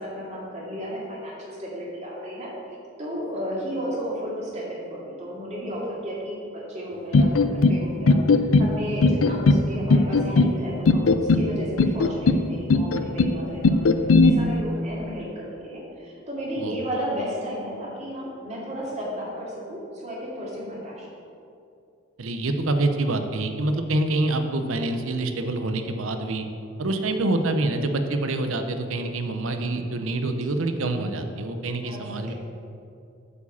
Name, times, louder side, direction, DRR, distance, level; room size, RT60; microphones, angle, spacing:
voice 1, 0.0-21.1 31.8-32.3, equal, 35° right, -5 dB, 2.2 m, -33 dB
sound 1, 7.1-7.8 8.1-8.7 9.0-9.6 9.9-10.5 10.9-11.5 11.8-12.4 12.7-13.3 13.6-14.3, left 3 dB, 85° left, 0.5 m, -17 dB
voice 2, 22.2-26.5 26.8-32.3, right 2 dB, 80° right, 7 dB, 0.7 m, -26 dB
8.2 x 4.9 x 7.1 m, 2.6 s
head